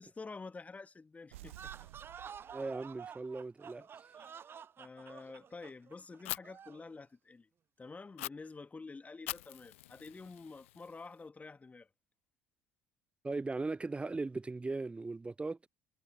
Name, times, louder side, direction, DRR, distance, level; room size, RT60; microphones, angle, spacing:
voice 1, 0.0-1.9 3.8-3.9 4.2-4.4 4.8-7.5 7.8-11.9, left 4 dB, 20° left, 1.9 m, -49 dB
sound 1, 1.3-3.2, right 17 dB, 70° right, 0.9 m, -53 dB
sound 2, 1.4-6.9, right 7 dB, 35° right, 0.5 m, -50 dB
voice 2, 2.5-3.8 13.2-15.7, right 3 dB, 15° right, 0.9 m, -38 dB
Fire, 6.3-6.4 8.2-8.3 9.3-11.2, left 16 dB, 70° left, 0.6 m, -43 dB
figure-of-eight pair, 55°, 7 cm